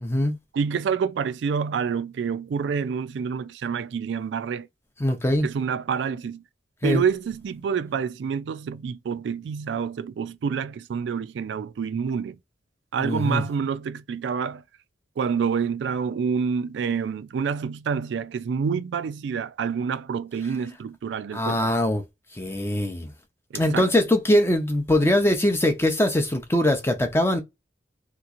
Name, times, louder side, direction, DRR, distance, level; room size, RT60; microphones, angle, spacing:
voice 1, 0.0-0.4 5.0-5.5 6.8-7.0 13.0-13.4 21.3-22.0 22.3-23.1 23.5-27.4, left 1 dB, 15° left, 0.5 m, -22 dB
voice 2, 0.5-4.7 5.4-6.4 6.8-12.4 12.9-14.6 15.2-21.6 23.5-23.9, right 6 dB, 70° right, 0.3 m, -27 dB
3.3 x 2.9 x 2.4 m
head